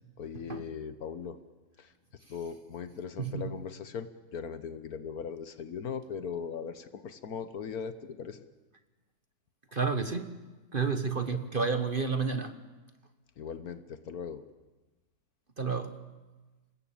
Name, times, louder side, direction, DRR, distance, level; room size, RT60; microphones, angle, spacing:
voice 1, 0.2-1.4 1.8-1.9 2.3-8.4 11.2-11.4 13.4-14.4, left 6 dB, 70° left, 12 dB, 1.5 m, -39 dB
voice 2, 9.7-10.3 10.7-12.6 15.6-16.0, right 5 dB, 35° right, 9 dB, 1.3 m, -30 dB
27.5 x 20.0 x 8.8 m, 1.2 s
omnidirectional pair, 1.6 m